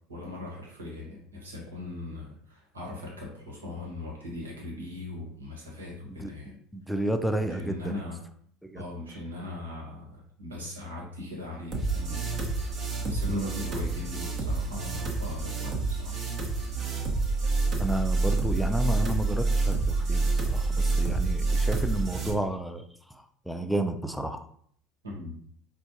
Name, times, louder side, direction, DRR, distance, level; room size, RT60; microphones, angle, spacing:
voice 1, 0.1-6.5 7.4-8.2 8.7-12.3 13.0-16.2 25.0-25.4, left 2 dB, 85° right, -2 dB, 1.2 m, -39 dB
voice 2, 6.7-7.9 8.6-8.8 13.3-13.5 17.8-24.5, right 1 dB, ahead, 6 dB, 0.4 m, -31 dB
sound 1, 11.7-22.3, right 3 dB, 45° right, 0.9 m, -28 dB
4.4 x 2.3 x 2.8 m, 0.62 s
hypercardioid pair, 75°, 0 cm